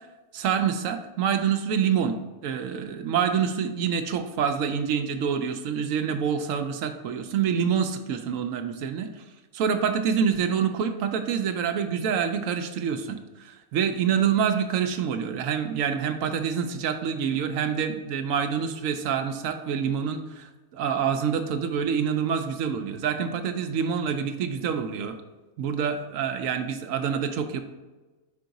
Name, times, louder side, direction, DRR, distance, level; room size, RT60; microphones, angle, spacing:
voice 1, 0.3-2.2 2.4-9.2 9.5-25.2 25.6-27.6, right 7 dB, 75° right, 7 dB, 1.0 m, -26 dB
5.2 x 4.7 x 4.0 m, 1.2 s
omnidirectional pair, 1.4 m